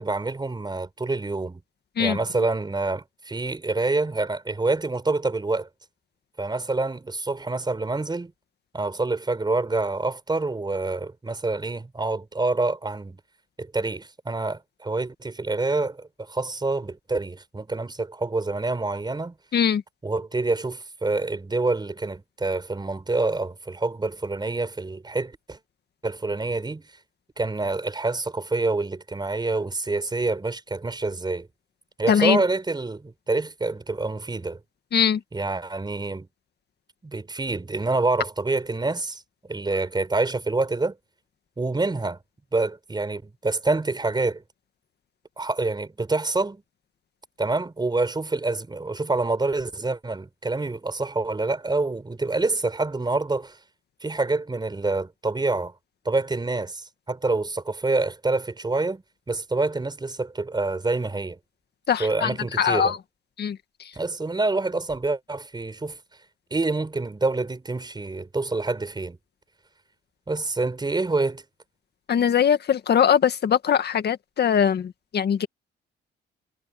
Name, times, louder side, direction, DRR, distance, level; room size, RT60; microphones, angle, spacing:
voice 1, 0.0-1.6 2.0-5.7 6.4-8.3 8.7-13.2 13.6-19.3 20.0-25.6 26.0-26.8 27.4-31.5 32.0-34.6 35.3-36.3 37.0-39.2 39.5-41.0 41.6-42.2 42.5-44.4 45.4-46.6 47.4-53.6 54.0-55.7 56.0-61.4 62.0-62.9 64.0-66.0 66.5-69.2 70.3-71.4, right 3 dB, 20° right, 5.9 m, -27 dB
voice 2, 19.5-19.8 32.1-32.4 34.9-35.2 61.9-63.0 63.4-63.9 72.1-75.5, left 8 dB, 55° left, 1.9 m, -22 dB
cardioid pair, 90°, 20 cm